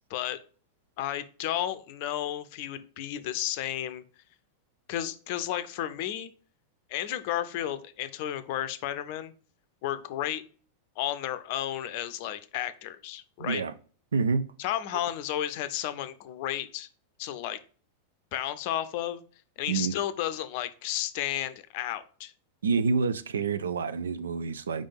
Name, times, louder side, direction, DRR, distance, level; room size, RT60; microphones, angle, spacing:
voice 1, 1.0-4.0 4.9-6.3 6.9-9.3 9.8-10.4 11.0-13.6 14.6-16.9 17.2-17.6 18.3-19.2 19.6-22.3, left 12 dB, 50° left, 0.5 m, -32 dB
voice 2, 13.4-13.7 14.1-14.5 19.7-19.9 22.6-24.9, right 5 dB, 70° right, 0.4 m, -27 dB
5.1 x 3.4 x 5.5 m
figure-of-eight pair, 90°, 0 cm